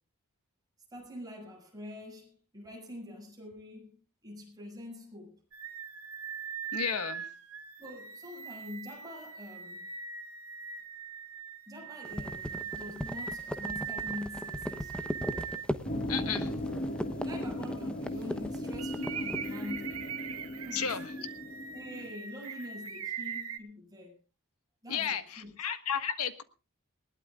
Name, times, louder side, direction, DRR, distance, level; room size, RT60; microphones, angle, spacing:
voice 1, 0.9-5.4 7.8-9.9 11.7-15.2 16.0-16.6 17.0-20.0 20.6-21.3 21.7-24.2 24.8-25.5, left 1 dB, 15° right, 7.1 m, -45 dB
sound 1, 5.5-15.7 16.2-16.3 18.8-23.6, right 7 dB, 70° right, 2.2 m, -41 dB
voice 2, 6.7-7.3 16.1-16.4 20.7-21.1 24.9-26.4, left 7 dB, 80° left, 1.5 m, -33 dB
sound 2, 12.0-19.5, equal, 5° left, 1.0 m, -37 dB
sound 3, 15.8-22.1, left 1 dB, 40° left, 1.5 m, -37 dB
20.5 x 18.5 x 2.5 m
head